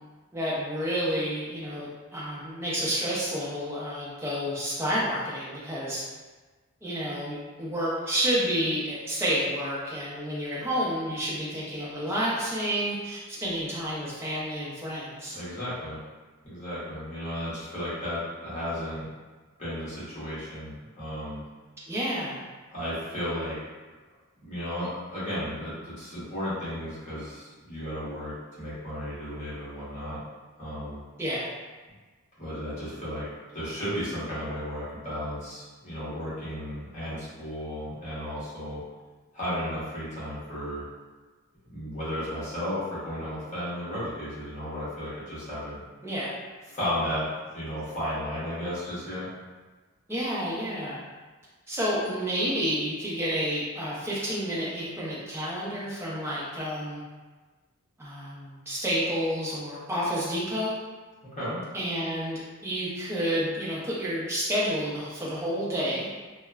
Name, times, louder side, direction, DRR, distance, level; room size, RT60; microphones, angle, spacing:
voice 1, 0.3-6.0 6.8-15.3 21.9-22.4 31.2-31.5 46.0-46.3 50.1-51.0 51.7-57.0 58.0-60.7 61.7-66.1, equal, 10° right, -7 dB, 0.5 m, -30 dB
voice 2, 15.3-16.0 16.4-19.1 19.6-21.4 22.7-23.6 24.4-30.2 30.6-31.0 32.4-33.3 33.5-38.8 39.3-40.8 41.7-45.8 46.7-47.3 47.5-49.3 61.2-61.6, equal, 30° left, -11 dB, 1.0 m, -34 dB
2.8 x 2.1 x 2.3 m, 1.3 s
head